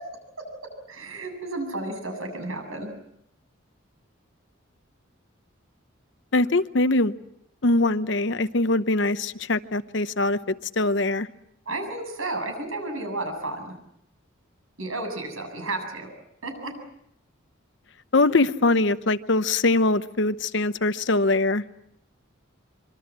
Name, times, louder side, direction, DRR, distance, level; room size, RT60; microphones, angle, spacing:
voice 1, 0.9-2.9 11.7-13.7 14.8-16.1 16.4-16.7, right 2 dB, 90° right, 5 dB, 7.8 m, -32 dB
voice 2, 6.3-7.1 7.6-11.3 18.1-21.6, left 2 dB, 60° left, 13 dB, 0.9 m, -22 dB
26.0 x 24.5 x 7.5 m, 0.77 s
head